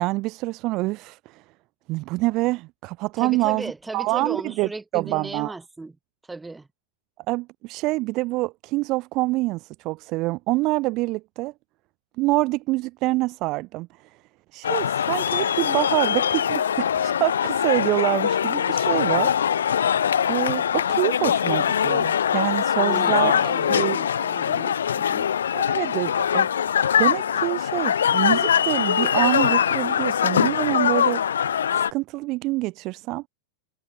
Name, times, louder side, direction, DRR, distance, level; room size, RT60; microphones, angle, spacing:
voice 1, 0.0-1.4 1.9-5.5 7.3-11.5 12.2-14.2 14.5-19.3 20.3-23.3 23.7-24.0 25.5-26.5 27.0-33.2, right 21 dB, 40° right, 0.5 m, -26 dB
voice 2, 3.2-6.0 6.2-6.7 22.8-25.3, right 3 dB, 10° right, 6.2 m, -36 dB
sound 1, 14.6-31.9, left 8 dB, 65° left, 0.5 m, -22 dB
figure-of-eight pair, 90°, 0 cm